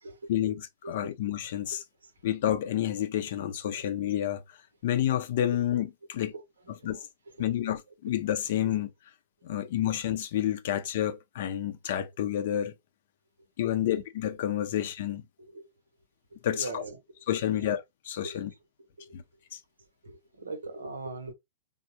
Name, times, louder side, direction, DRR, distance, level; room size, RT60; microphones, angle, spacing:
voice 1, 0.0-0.5 0.8-1.1 1.7-2.3 3.8-3.9 5.5-5.6 6.3-7.9 8.6-8.8 9.5-9.8 12.0-12.2 13.7-13.9 14.7-14.8 15.4-15.7 16.4-17.7 18.2-19.2 20.0-21.3, right 3 dB, 90° right, 0.7 m, -44 dB
voice 2, 0.9-1.8 2.2-4.4 4.8-6.3 6.8-7.0 7.4-8.9 9.4-12.7 13.6-15.2 16.4-16.8 17.3-18.5 19.1-19.2 19.5-19.6, left 11 dB, 60° left, 0.5 m, -29 dB
3.6 x 2.0 x 2.7 m
hypercardioid pair, 115°, 0 cm